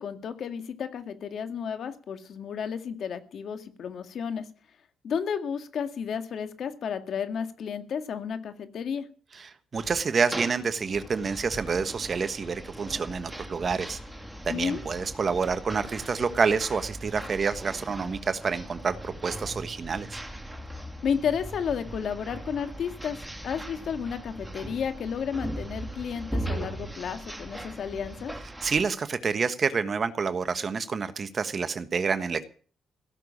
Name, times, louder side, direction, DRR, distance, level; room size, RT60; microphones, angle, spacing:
voice 1, 0.0-4.5 5.0-9.1 14.5-14.8 21.0-23.2 23.4-28.3, left 7 dB, 60° left, 8 dB, 2.0 m, -32 dB
voice 2, 9.3-14.0 14.4-20.2 28.6-32.4, right 5 dB, 40° right, 11 dB, 1.3 m, -28 dB
sound 1, 9.7-28.9, right 1 dB, 5° right, 2.4 m, -39 dB
17.0 x 6.9 x 10.0 m, 0.43 s
cardioid pair, 90°, 0 cm